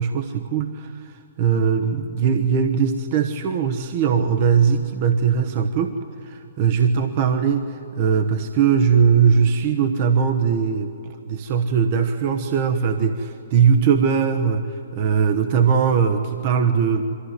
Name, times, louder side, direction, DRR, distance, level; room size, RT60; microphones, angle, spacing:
voice 1, 0.0-6.0 6.2-17.1, right 6 dB, 40° right, 6 dB, 1.1 m, -20 dB
23.5 x 14.5 x 9.6 m, 2.6 s
figure-of-eight pair, 120°, 0 cm